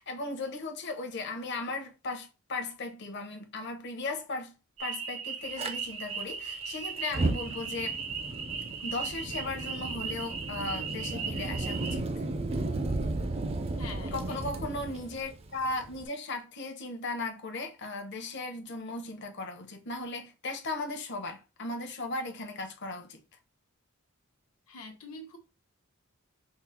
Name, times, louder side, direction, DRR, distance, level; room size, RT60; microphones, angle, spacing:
voice 1, 0.0-4.5 4.8-8.0 8.8-12.1 14.1-23.2, left 2 dB, 55° left, 0.8 m, -37 dB
sound 1, 4.8-12.0, right 6 dB, 70° right, 0.8 m, -37 dB
Fire, 5.6-5.7 7.0-16.1, right 2 dB, 30° right, 0.4 m, -34 dB
voice 2, 13.8-14.4 24.7-25.4, left 2 dB, 80° left, 0.9 m, -44 dB
3.8 x 2.0 x 4.3 m
head